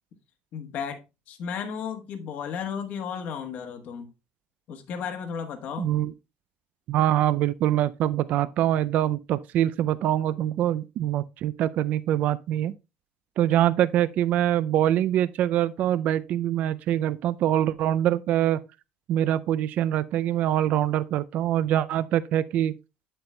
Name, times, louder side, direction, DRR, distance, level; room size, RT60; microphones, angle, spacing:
voice 1, 0.5-1.0 1.3-4.1 4.7-5.9, left 7 dB, 50° left, 1.1 m, -34 dB
voice 2, 5.8-6.1 6.9-12.7 13.4-18.6 19.1-22.7, right 12 dB, 50° right, 0.3 m, -24 dB
8.6 x 7.7 x 2.2 m
cardioid pair, 165°, 3 cm